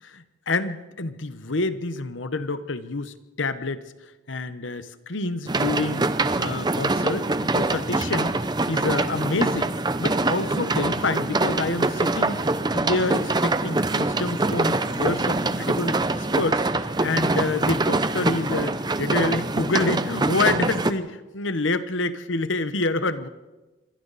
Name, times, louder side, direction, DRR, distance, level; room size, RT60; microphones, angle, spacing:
voice 1, 0.0-3.8 4.3-6.1 6.4-8.4 8.7-9.7 10.0-12.4 12.7-16.0 16.4-16.6 17.0-23.3, left 2 dB, 80° left, 12 dB, 1.2 m, -27 dB
sound 1, 5.5-20.9, right 2 dB, 20° right, 0.7 m, -24 dB
26.5 x 23.0 x 4.2 m, 1.1 s
head